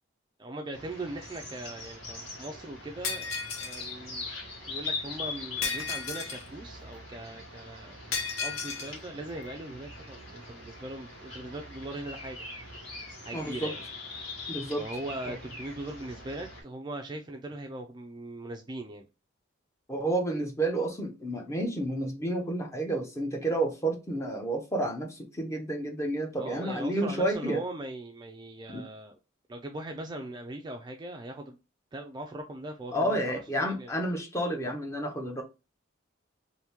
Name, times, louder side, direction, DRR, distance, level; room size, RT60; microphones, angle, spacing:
voice 1, 0.4-3.3 3.6-4.3 4.7-12.5 13.2-13.8 14.8-19.1 26.4-29.2 29.5-31.6 31.9-33.9, right 1 dB, 20° right, 0.3 m, -40 dB
sound 1, 0.7-16.6, left 3 dB, 65° left, 1.7 m, -42 dB
Shatter, 3.0-3.9 5.6-6.5 8.1-8.9, left 5 dB, 85° left, 0.8 m, -33 dB
voice 2, 13.3-13.7 14.5-14.8 15.3-15.4 19.9-27.6 28.7-28.8 32.9-35.4, right 1 dB, 15° left, 0.6 m, -30 dB
2.9 x 2.6 x 3.5 m
head